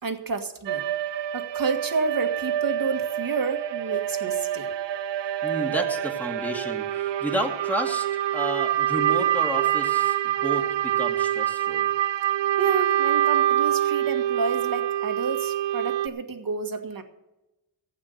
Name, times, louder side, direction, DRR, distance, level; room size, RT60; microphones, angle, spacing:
voice 1, 0.0-0.8 1.3-4.7 12.6-17.0, right 4 dB, 50° right, 6 dB, 1.8 m, -30 dB
sound 1, 0.7-16.1, right 11 dB, 70° right, 0.7 m, -26 dB
voice 2, 5.4-8.1 8.3-11.9, equal, 5° left, 2 dB, 2.3 m, -31 dB
16.0 x 8.7 x 6.7 m, 0.99 s
wide cardioid pair, 100°, 44 cm